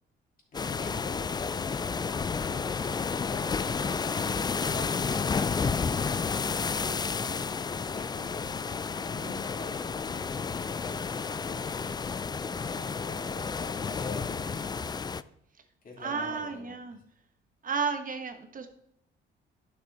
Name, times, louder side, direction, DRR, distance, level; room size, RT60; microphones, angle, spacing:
voice 1, 0.5-6.1 6.6-8.6 9.0-12.0 12.2-14.8 15.8-17.0, left 2 dB, 45° left, -2 dB, 3.2 m, -46 dB
sound 1, 0.5-15.2, left 5 dB, 20° left, 0.3 m, -31 dB
voice 2, 16.0-17.0 17.6-18.7, right 5 dB, 45° right, 6 dB, 1.3 m, -32 dB
11.5 x 6.3 x 4.1 m, 0.76 s
cardioid pair, 90°, 20 cm